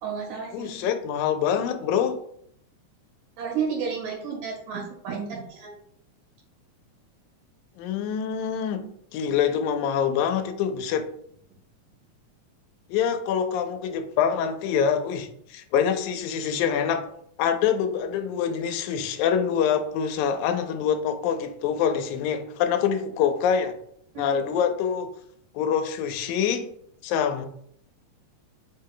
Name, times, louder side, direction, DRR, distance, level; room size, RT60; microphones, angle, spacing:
voice 1, 0.0-0.9 3.4-5.7 24.1-24.4, right 6 dB, 90° right, 2.7 m, -32 dB
voice 2, 0.5-2.2 7.8-8.9 9.1-11.1 12.9-17.1 17.4-23.8 24.2-25.1 25.6-26.7 27.0-27.5, left 8 dB, 90° left, 2.0 m, -25 dB
5.2 x 2.2 x 3.8 m
omnidirectional pair, 3.3 m